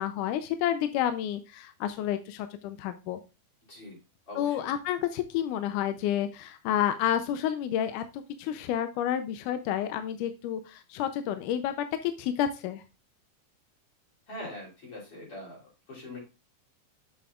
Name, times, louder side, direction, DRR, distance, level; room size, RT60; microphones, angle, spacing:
voice 1, 0.0-3.2 4.4-12.8, left 10 dB, 80° left, 9 dB, 2.1 m, -30 dB
voice 2, 4.3-4.7 14.3-16.2, left 1 dB, 45° left, -4 dB, 4.2 m, -43 dB
7.7 x 7.7 x 2.3 m, 0.28 s
omnidirectional pair, 3.7 m